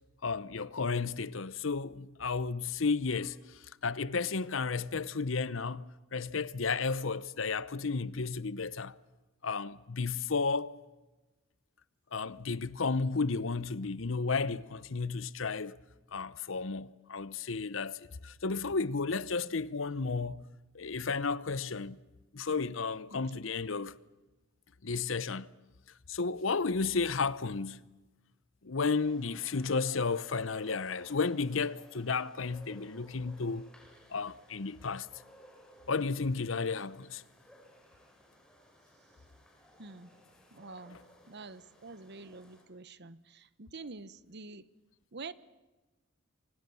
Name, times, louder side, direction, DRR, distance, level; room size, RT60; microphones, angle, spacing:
voice 1, 0.2-8.9 9.4-10.7 12.1-15.8 16.1-20.4 20.7-22.0 22.3-24.0 24.8-25.5 26.1-27.8 28.6-33.7 34.1-35.1 35.9-37.2, left 4 dB, 70° left, 0.8 m, -33 dB
sound 1, 28.8-42.6, equal, 5° left, 6.1 m, -59 dB
voice 2, 39.8-40.1 40.5-41.0 41.3-44.7 45.1-45.3, right 3 dB, 55° right, 1.0 m, -47 dB
29.0 x 25.0 x 7.0 m
head